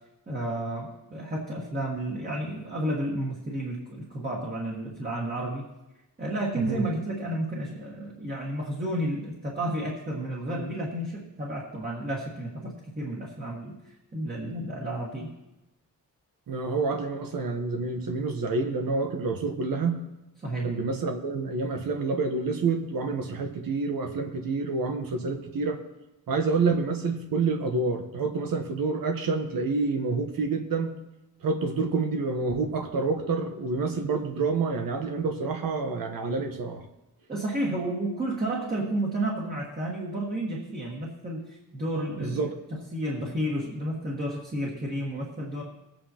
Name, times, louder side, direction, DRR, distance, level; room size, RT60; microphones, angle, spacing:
voice 1, 0.3-5.7 6.2-15.3 20.4-20.7 37.3-42.4 42.7-45.6, right 1 dB, 25° right, -3 dB, 1.5 m, -31 dB
voice 2, 16.5-20.0 20.6-25.8 26.3-30.9 31.4-36.8 42.2-42.5, right 4 dB, 85° right, 5 dB, 1.2 m, -28 dB
20.5 x 8.7 x 2.9 m, 0.97 s
wide cardioid pair, 180°, 33 cm